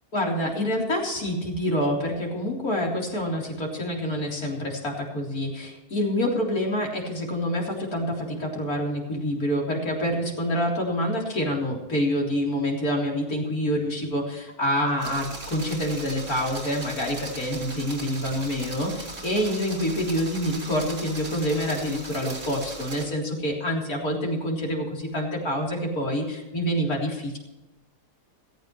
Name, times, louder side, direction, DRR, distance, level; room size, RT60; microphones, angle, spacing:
voice 1, 0.1-27.4, equal, 60° left, -2 dB, 4.2 m, -27 dB
sound 1, 15.0-23.0, right 2 dB, 90° right, 4.4 m, -38 dB
16.5 x 15.5 x 3.2 m, 1.0 s
omnidirectional pair, 1.7 m